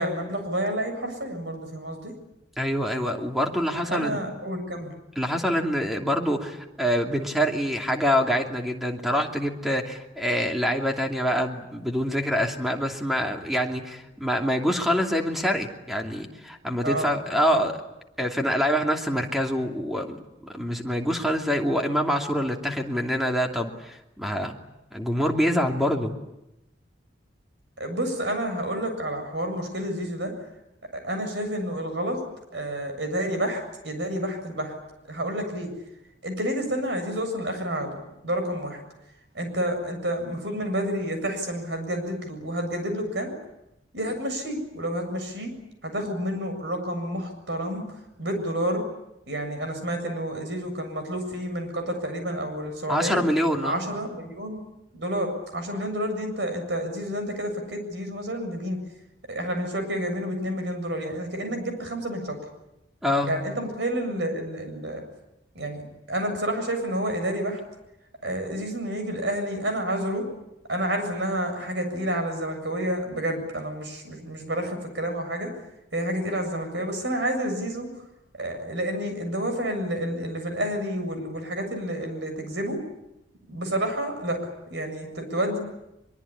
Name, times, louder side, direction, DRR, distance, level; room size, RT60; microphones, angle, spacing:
voice 1, 0.0-2.1 3.7-4.9 16.8-17.1 27.8-30.3 30.9-32.2 32.5-34.7 35.1-35.7 36.2-38.0 38.2-38.8 39.3-43.3 43.9-45.5 45.8-48.8 49.3-53.2 53.6-54.6 54.9-58.8 59.3-62.4 63.2-65.0 65.5-67.6 68.2-70.3 70.7-75.5 75.9-77.9 78.3-82.8 83.5-85.6, right 1 dB, 70° right, 6 dB, 7.4 m, -29 dB
voice 2, 2.6-4.2 5.2-17.7 18.2-20.2 20.5-24.6 24.9-26.1 52.9-53.8 63.0-63.3, equal, ahead, 2 dB, 2.8 m, -25 dB
23.5 x 23.0 x 10.0 m, 0.91 s
head